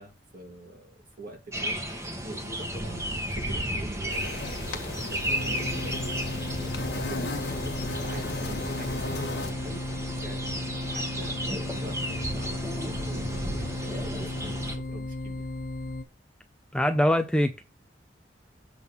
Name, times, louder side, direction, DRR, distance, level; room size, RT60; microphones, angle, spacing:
voice 1, 0.0-6.2 6.6-15.4, right 1 dB, 50° right, 2.5 m, -44 dB
sound 1, 1.5-14.8, equal, 15° right, 1.5 m, -34 dB
sound 2, 4.1-9.5, left 2 dB, 65° left, 1.7 m, -36 dB
sound 3, 5.3-16.0, left 2 dB, 45° left, 0.9 m, -35 dB
voice 2, 16.7-17.6, left 1 dB, 5° left, 0.6 m, -24 dB
7.9 x 3.7 x 5.7 m
head